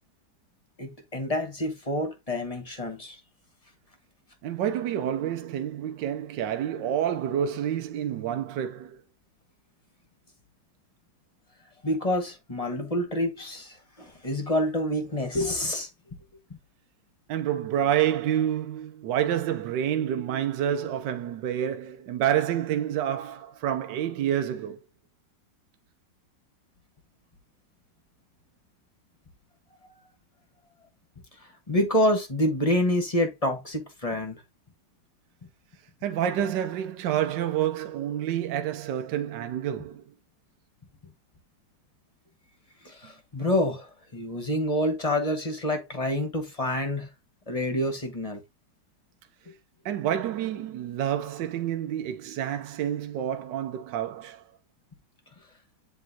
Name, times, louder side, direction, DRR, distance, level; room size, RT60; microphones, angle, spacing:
voice 1, 0.8-3.2 11.8-15.9 31.4-34.4 42.8-47.1 47.5-48.4, left 1 dB, 25° left, 1.1 m, -27 dB
voice 2, 4.4-9.0 17.3-24.8 36.0-40.0 49.8-54.4, right 10 dB, 80° right, 1.4 m, -28 dB
9.9 x 3.5 x 2.8 m
omnidirectional pair, 1.9 m